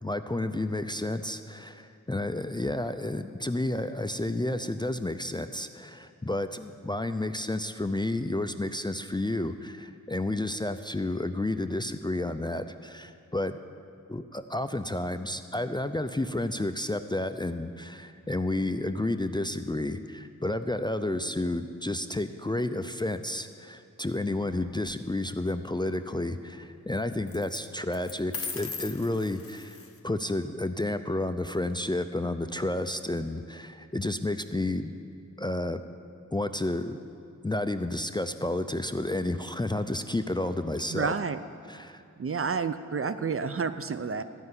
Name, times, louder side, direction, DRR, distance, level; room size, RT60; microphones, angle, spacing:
voice 1, 0.0-13.5 14.1-29.8 30.0-34.9 35.4-35.8 36.3-37.0 37.4-41.1 41.7-42.0, left 1 dB, 15° left, 9 dB, 0.4 m, -31 dB
sound 1, 24.4-24.9 27.3-27.6 27.9-30.0, left 5 dB, 45° left, 0.9 m, -39 dB
voice 2, 40.9-41.4 42.2-44.2, right 5 dB, 45° right, 11 dB, 0.5 m, -30 dB
14.0 x 5.4 x 9.5 m, 2.6 s
wide cardioid pair, 90°, 31 cm